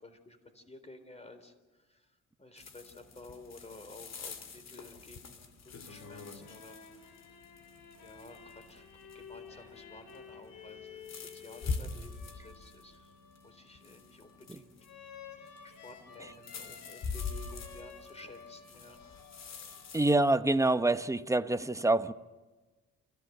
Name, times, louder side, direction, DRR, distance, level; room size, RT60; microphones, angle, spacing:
voice 1, 0.0-1.5 1.9-2.0 2.4-6.8 8.0-8.9 9.1-13.1 13.4-14.7 15.6-19.0, left 2 dB, 20° left, 3.9 m, -53 dB
sound 1, 2.6-20.1, left 4 dB, 60° left, 2.8 m, -45 dB
sound 2, 5.6-20.2, left 6 dB, 80° left, 3.3 m, -53 dB
voice 2, 19.9-22.1, right 2 dB, 10° right, 0.9 m, -26 dB
29.5 x 15.5 x 7.9 m
cardioid pair, 90°, 30 cm